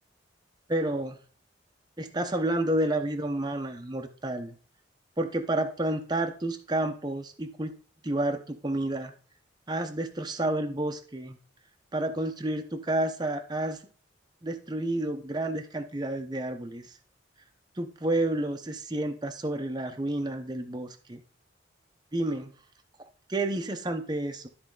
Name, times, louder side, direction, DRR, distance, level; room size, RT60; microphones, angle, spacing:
voice 1, 0.7-1.2 2.0-4.5 5.2-7.7 8.0-9.1 9.7-11.4 11.9-13.8 14.4-16.9 17.8-21.2 22.1-22.5 23.3-24.5, right 1 dB, 20° right, 5 dB, 0.7 m, -30 dB
13.0 x 4.3 x 3.7 m, 0.42 s
head